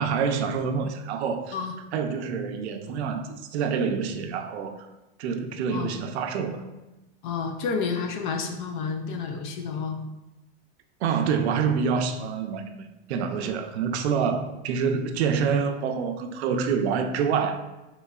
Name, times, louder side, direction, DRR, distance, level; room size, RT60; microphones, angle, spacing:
voice 1, 0.0-1.5 1.9-4.9 5.2-6.6 11.0-17.6, right 6 dB, 80° right, 6 dB, 0.5 m, -27 dB
voice 2, 7.2-10.0, left 5 dB, 50° left, 4 dB, 0.4 m, -30 dB
3.7 x 3.1 x 2.3 m, 1.0 s
supercardioid pair, 170°, 33 cm